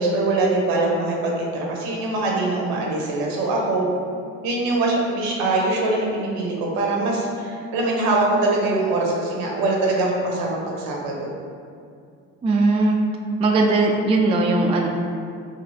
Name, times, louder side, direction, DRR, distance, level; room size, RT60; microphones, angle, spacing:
voice 1, 0.0-3.9 4.4-11.3, right 2 dB, 65° right, -2 dB, 0.9 m, -23 dB
voice 2, 12.4-13.0 13.4-14.9, right 2 dB, 15° right, 1 dB, 0.3 m, -19 dB
3.7 x 2.4 x 3.1 m, 2.4 s
hypercardioid pair, 55°, 38 cm